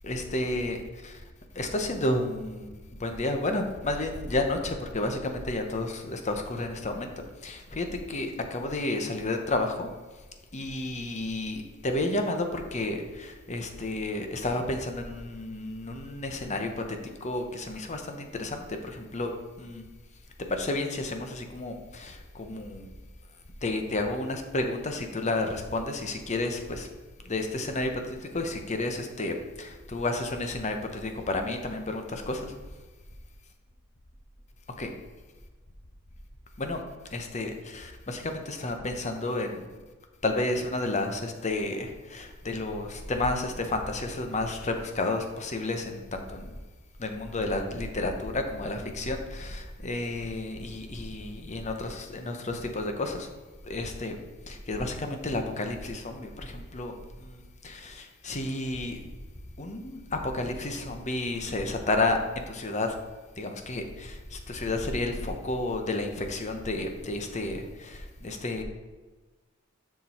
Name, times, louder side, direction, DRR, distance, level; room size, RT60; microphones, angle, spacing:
voice 1, 0.0-1.2 1.5-7.1 7.4-9.9 10.5-19.3 19.6-19.8 20.5-22.9 23.6-26.9 27.2-32.5 34.8-34.9 36.6-36.8 37.1-39.8 40.2-46.5 47.0-53.3 53.6-54.1 54.5-59.0 59.6-63.0 63.4-68.6, left 2 dB, 35° left, 5 dB, 0.9 m, -31 dB
6.9 x 6.1 x 4.3 m, 1.3 s
head